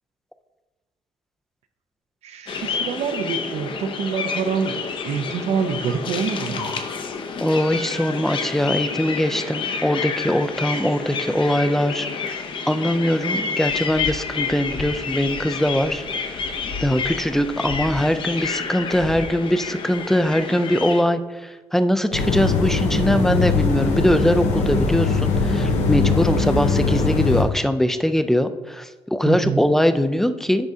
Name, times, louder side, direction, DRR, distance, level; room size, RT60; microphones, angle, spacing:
voice 1, 2.2-4.8 5.0-6.9 29.2-29.7, right 6 dB, 70° right, 8 dB, 0.6 m, -26 dB
sound 1, 2.5-21.0, left 5 dB, 45° left, 0.6 m, -29 dB
voice 2, 7.4-16.0 16.8-30.7, equal, 5° left, 10 dB, 0.3 m, -21 dB
sound 2, 22.1-27.4, left 4 dB, 85° left, 0.8 m, -21 dB
10.5 x 3.6 x 2.7 m, 1.2 s
cardioid pair, 115°, 11 cm